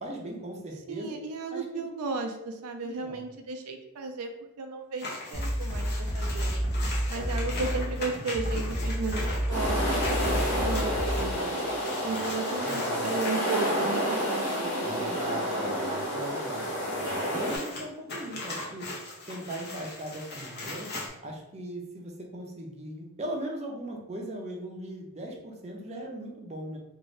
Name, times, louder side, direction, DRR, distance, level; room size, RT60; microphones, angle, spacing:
voice 1, 0.0-1.1 1.5-2.2 2.8-3.2 7.1-7.5 12.5-13.1 14.8-18.9 19.3-20.9 21.2-26.8, right 1 dB, 30° right, 0 dB, 0.5 m, -39 dB
voice 2, 0.9-4.3 4.6-6.5 7.1-11.5 12.0-15.4, right 4 dB, 85° right, 5 dB, 0.4 m, -35 dB
sound 1, 5.0-13.5 17.2-21.1, left 2 dB, 45° left, 0.8 m, -39 dB
sound 2, 5.3-11.3, equal, 15° left, 0.9 m, -30 dB
sound 3, 9.5-17.6, equal, 75° left, 1.0 m, -29 dB
2.6 x 2.5 x 3.1 m, 0.91 s
head